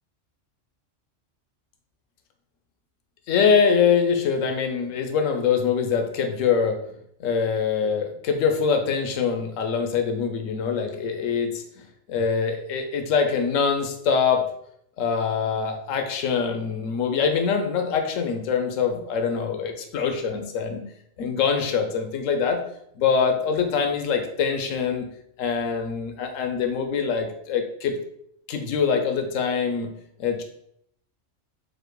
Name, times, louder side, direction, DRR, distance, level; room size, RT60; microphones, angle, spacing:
voice 1, 3.3-6.8 7.2-11.6 12.1-14.4 15.0-20.8 21.2-22.6 23.0-25.1 25.4-28.0 28.5-29.9 30.2-30.4, left 6 dB, 90° left, 5 dB, 1.0 m, -24 dB
4.2 x 2.6 x 4.6 m, 0.70 s
omnidirectional pair, 1.3 m